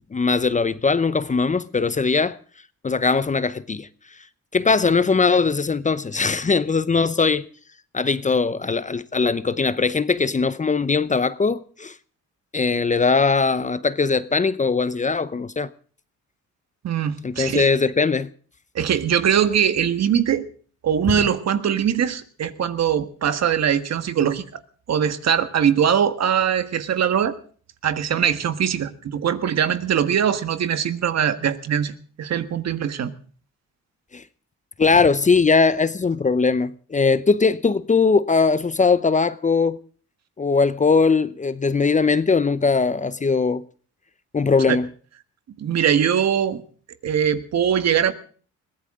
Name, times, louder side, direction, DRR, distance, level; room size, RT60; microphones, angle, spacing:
voice 1, 0.1-2.4 2.8-3.9 4.5-7.4 7.9-11.9 12.5-15.7 17.2-18.3 21.1-21.2 34.1-34.2 34.8-39.8 40.4-43.6 44.3-44.9, left 4 dB, 25° left, 0.8 m, -20 dB
voice 2, 16.8-17.7 18.7-20.5 20.8-24.6 24.9-27.3 27.8-33.1 44.7-44.8 45.6-46.6 47.0-48.1, right 8 dB, 60° right, 1.6 m, -21 dB
22.0 x 16.5 x 3.7 m
cardioid pair, 90°, 30 cm